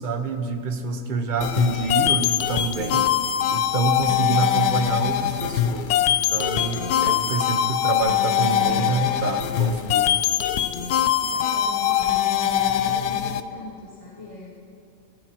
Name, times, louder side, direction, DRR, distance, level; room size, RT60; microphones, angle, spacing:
voice 1, 0.0-3.1 3.5-6.0 6.3-10.1, right 4 dB, 35° right, 4 dB, 1.0 m, -27 dB
sound 1, 1.4-13.4, left 10 dB, 75° left, 1.1 m, -22 dB
voice 2, 11.2-14.6, left 2 dB, 20° left, -6 dB, 2.0 m, -40 dB
26.5 x 15.0 x 3.0 m, 2.6 s
omnidirectional pair, 1.7 m